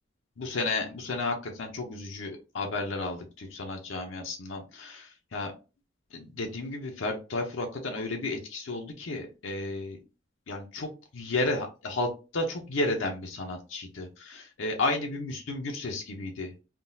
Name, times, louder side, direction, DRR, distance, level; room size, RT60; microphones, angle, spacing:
voice 1, 0.4-5.5 6.1-10.0 10.5-10.9 11.1-16.5, left 2 dB, 85° left, 2 dB, 0.6 m, -32 dB
3.6 x 2.3 x 2.6 m, 0.31 s
head